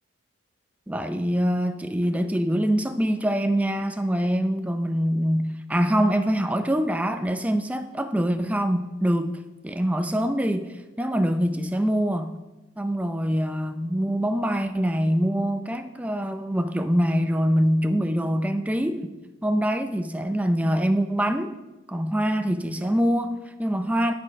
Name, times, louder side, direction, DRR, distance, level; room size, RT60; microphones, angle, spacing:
voice 1, 0.9-9.3 9.6-12.3 12.8-19.1 19.4-21.6 21.9-24.1, equal, 5° right, 0.4 m, -24 dB
11.0 x 6.4 x 5.2 m
head